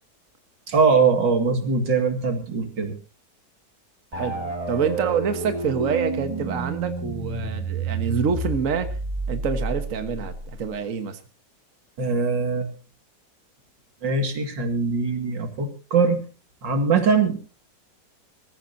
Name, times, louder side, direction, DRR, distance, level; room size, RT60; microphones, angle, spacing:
voice 1, 0.7-3.0 12.0-12.7 14.0-16.2 16.6-17.4, right 4 dB, 85° right, 6 dB, 2.9 m, -22 dB
sound 1, 4.1-10.8, right 3 dB, 20° right, 2.8 m, -30 dB
voice 2, 4.1-8.9 9.3-11.2, right 6 dB, 50° right, 8 dB, 1.7 m, -26 dB
25.0 x 14.5 x 2.8 m, 0.33 s
omnidirectional pair, 1.9 m